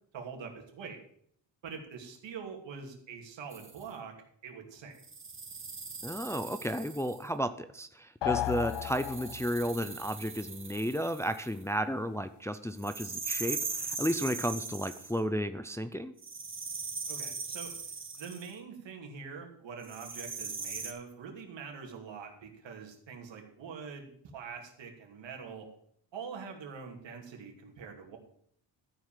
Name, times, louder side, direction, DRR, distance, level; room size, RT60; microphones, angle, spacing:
voice 1, 0.1-1.0 1.6-4.1 4.4-4.9 17.1-17.7 18.2-25.7 26.1-28.2, right 6 dB, 65° right, 2 dB, 2.6 m, -44 dB
sound 1, 3.5-3.8 5.0-7.3 8.4-11.6 12.8-15.2 16.2-18.5 19.8-20.9, right 4 dB, 25° right, 1.7 m, -40 dB
voice 2, 6.0-16.1, equal, 5° left, 9 dB, 0.5 m, -33 dB
sound 2, 8.2-9.7, left 13 dB, 60° left, 0.6 m, -33 dB
13.0 x 4.9 x 7.4 m, 0.65 s
cardioid pair, 110°, 47 cm